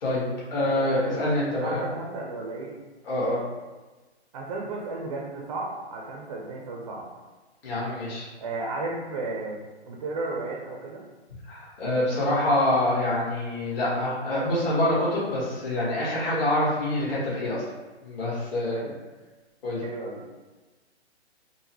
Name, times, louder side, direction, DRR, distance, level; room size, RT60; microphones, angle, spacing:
voice 1, 0.0-1.9 3.0-3.4 7.6-8.2 11.5-17.6 18.0-18.9 19.6-19.8, left 1 dB, 55° left, -7 dB, 1.5 m, -26 dB
voice 2, 0.6-1.3 1.6-2.7 4.3-7.0 8.4-9.6 9.9-11.0 18.7-19.0 19.8-20.3, right 2 dB, 30° right, -2 dB, 0.4 m, -34 dB
3.8 x 2.0 x 2.8 m, 1.2 s
hypercardioid pair, 130°, 34 cm